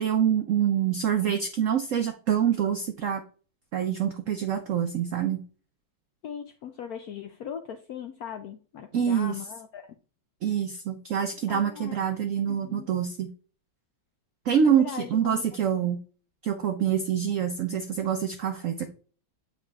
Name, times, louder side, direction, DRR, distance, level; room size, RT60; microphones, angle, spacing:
voice 1, 0.0-3.2 3.7-5.4 8.9-9.4 10.4-13.3 14.5-16.0 16.4-18.8, right 8 dB, 80° right, 0.7 m, -26 dB
voice 2, 6.2-10.0 11.5-12.0 12.5-12.9 14.6-15.4 15.8-15.9, left 8 dB, 80° left, 0.8 m, -39 dB
8.1 x 4.8 x 2.4 m
omnidirectional pair, 2.1 m